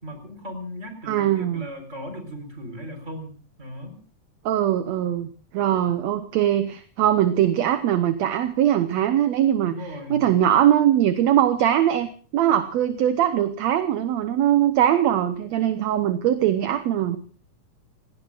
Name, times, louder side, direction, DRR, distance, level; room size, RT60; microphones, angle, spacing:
voice 1, 0.0-4.0 9.6-10.2, equal, 20° right, 6 dB, 4.6 m, -37 dB
voice 2, 1.1-1.7 4.5-9.7 10.1-17.2, right 11 dB, 65° right, 9 dB, 2.0 m, -21 dB
28.5 x 18.0 x 2.5 m, 0.40 s
omnidirectional pair, 3.7 m